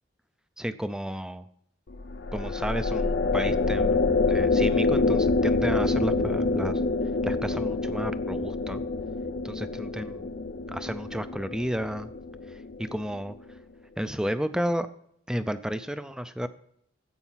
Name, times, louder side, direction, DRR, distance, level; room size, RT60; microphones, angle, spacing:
voice 1, 0.6-1.5 2.3-4.0 4.3-6.8 7.2-8.8 9.4-10.3 10.7-12.1 12.5-13.3 14.0-14.9 15.3-16.5, equal, 5° right, 12 dB, 0.5 m, -32 dB
sound 1, 1.9-13.3, left 3 dB, 55° left, 0.6 m, -27 dB
14.0 x 8.2 x 5.8 m, 0.70 s
head